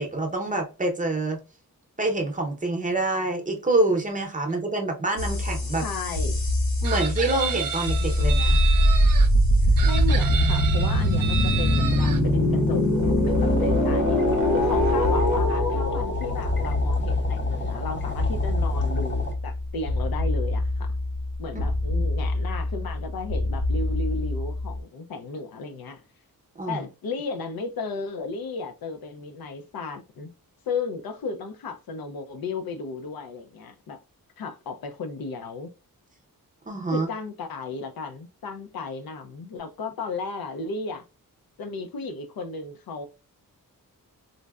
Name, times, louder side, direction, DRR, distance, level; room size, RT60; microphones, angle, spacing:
voice 1, 0.0-1.4 2.0-5.8 6.8-8.6 22.0-22.1 26.6-26.8 36.7-37.1, right 2 dB, 20° right, 0.7 m, -26 dB
sound 1, 5.2-24.8, left 1 dB, 55° left, 0.9 m, -23 dB
voice 2, 5.8-6.4 9.6-12.9 13.3-14.2 14.5-20.9 21.4-26.0 26.7-30.3 30.7-34.0 34.4-35.7 36.9-41.1 41.6-43.1, left 4 dB, 80° left, 0.6 m, -34 dB
Chicken rooster, 6.8-9.3 9.8-12.2, right 7 dB, 65° right, 0.5 m, -31 dB
sound 2, 13.4-19.3, left 4 dB, 35° left, 0.4 m, -32 dB
3.8 x 2.1 x 2.3 m
wide cardioid pair, 145°, 35 cm